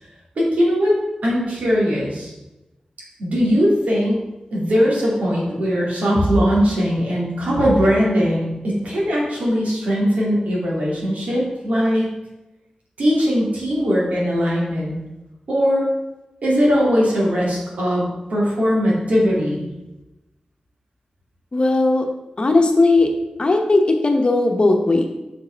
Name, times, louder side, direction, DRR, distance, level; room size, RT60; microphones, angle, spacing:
voice 1, 0.4-1.0 1.2-2.3 3.2-4.2 4.5-12.1 13.0-14.9 15.5-15.9 16.4-19.6, equal, 85° right, -5 dB, 2.5 m, -19 dB
voice 2, 21.5-22.1 22.4-23.1 23.4-25.1, left 2 dB, 45° left, 3 dB, 0.9 m, -17 dB
6.3 x 4.7 x 4.5 m, 0.99 s
wide cardioid pair, 80°, 2 cm